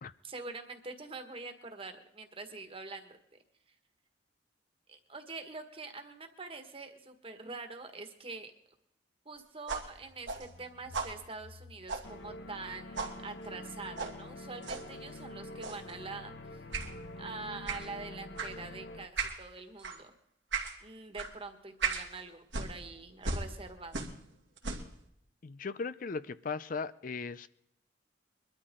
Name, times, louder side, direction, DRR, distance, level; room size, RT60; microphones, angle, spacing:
voice 1, 0.2-3.2 4.9-8.5 9.2-16.6 17.2-20.1 20.8-24.1, right 3 dB, 30° right, 6 dB, 1.6 m, -45 dB
sound 1, 9.7-12.7 13.0-13.2 14.0-14.2 14.6-14.9 15.6-15.9 16.7-16.9 17.7-17.9 18.4-18.5 19.2-19.4 19.8-20.0 20.5-20.8 21.2-21.3 21.8-22.1 22.5-24.3 24.6-25.0, right 4 dB, 90° right, 2.4 m, -37 dB
sound 2, 12.0-19.1, left 1 dB, 85° left, 1.1 m, -46 dB
voice 2, 25.4-27.5, left 4 dB, 50° left, 14 dB, 0.5 m, -37 dB
22.5 x 13.0 x 3.8 m, 0.76 s
head